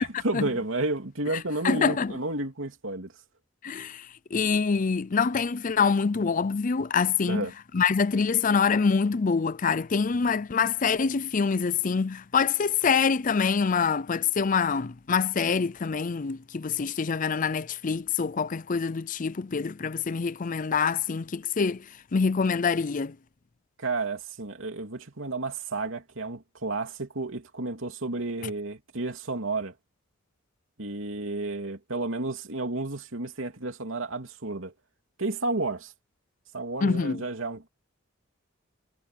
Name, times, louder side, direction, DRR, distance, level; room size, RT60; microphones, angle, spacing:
voice 1, 0.2-3.1 7.3-7.5 23.8-29.7 30.8-34.7 35.2-35.9 36.5-37.7, right 2 dB, 75° right, 3.0 m, -31 dB
voice 2, 1.6-2.1 3.6-7.5 7.7-23.2 36.8-37.2, left 5 dB, 40° left, 0.5 m, -25 dB
head